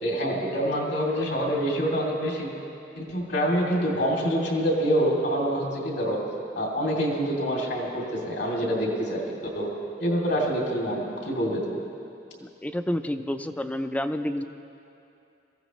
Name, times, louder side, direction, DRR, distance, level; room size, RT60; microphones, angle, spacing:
voice 1, 0.0-2.5 2.9-6.2 6.5-9.2 9.5-9.7 10.0-11.8, equal, 65° left, -2 dB, 2.8 m, -26 dB
voice 2, 12.4-14.4, left 1 dB, 10° left, 9 dB, 0.4 m, -29 dB
22.0 x 15.0 x 3.1 m, 2.8 s
head